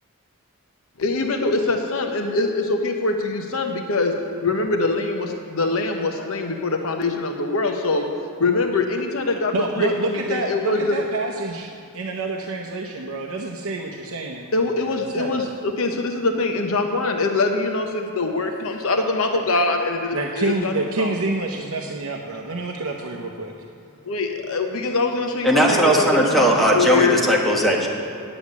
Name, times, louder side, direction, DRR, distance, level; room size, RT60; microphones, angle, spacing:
voice 1, 1.0-4.1 4.4-8.1 8.4-11.0 14.5-21.2 24.1-27.2, left 3 dB, 65° left, 4 dB, 0.8 m, -23 dB
voice 2, 9.5-15.5 19.3-19.4 20.1-23.5, right 2 dB, 70° right, 1 dB, 0.8 m, -28 dB
voice 3, 25.4-27.9, equal, ahead, -3 dB, 1.4 m, -18 dB
9.9 x 7.1 x 8.3 m, 2.5 s
head